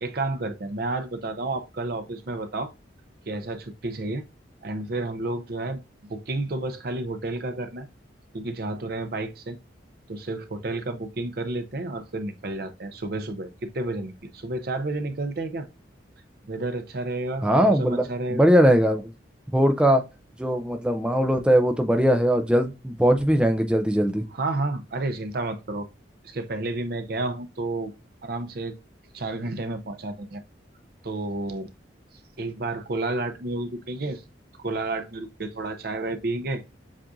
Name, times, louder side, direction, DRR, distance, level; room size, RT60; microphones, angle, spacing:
voice 1, 0.0-2.7 3.3-4.2 4.6-7.9 8.3-9.6 10.1-15.7 16.5-18.4 24.3-25.9 26.2-27.9 28.2-28.8 29.1-30.4 31.0-31.7 32.4-34.2 34.6-36.6, right 2 dB, 55° right, 0.6 m, -31 dB
voice 2, 17.4-19.1 19.5-20.0 20.4-24.2, equal, 5° right, 0.3 m, -20 dB
7.3 x 2.4 x 2.5 m
head